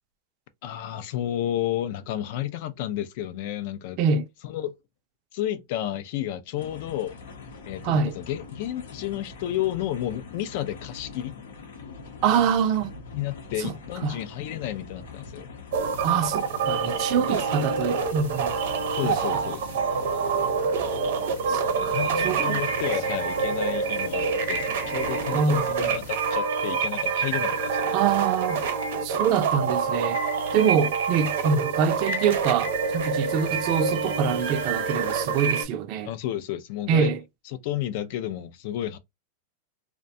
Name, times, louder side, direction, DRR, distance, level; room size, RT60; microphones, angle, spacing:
voice 1, 0.6-4.0 4.4-4.8 5.3-7.2 7.6-11.4 13.1-15.5 17.1-17.6 18.9-19.7 21.8-28.0 36.0-37.1 37.5-39.0, left 12 dB, 60° left, 0.4 m, -31 dB
voice 2, 4.0-4.3 7.8-8.2 12.2-12.9 13.6-13.7 14.0-14.2 16.0-18.5 19.0-19.1 21.5-22.6 25.3-25.9 27.9-28.6 29.0-30.2 30.5-36.1 36.9-37.2, right 7 dB, 45° right, 0.4 m, -25 dB
sound 1, 6.6-26.1, left 4 dB, 90° left, 0.8 m, -43 dB
sound 2, 15.7-35.6, right 5 dB, 75° right, 0.8 m, -27 dB
2.5 x 2.1 x 2.6 m
supercardioid pair, 135°, 0 cm